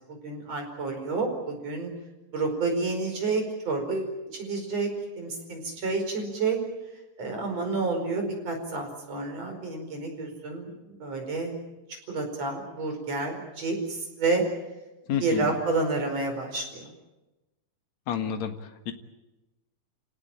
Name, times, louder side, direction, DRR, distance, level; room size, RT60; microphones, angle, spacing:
voice 1, 0.1-1.9 2.3-4.9 5.2-6.6 7.2-11.5 12.1-14.4 15.2-16.8, right 3 dB, 50° right, 3 dB, 6.0 m, -29 dB
voice 2, 15.1-15.6 18.1-18.9, left 8 dB, 60° left, 7 dB, 2.7 m, -30 dB
28.5 x 18.0 x 9.0 m, 1.0 s
omnidirectional pair, 3.8 m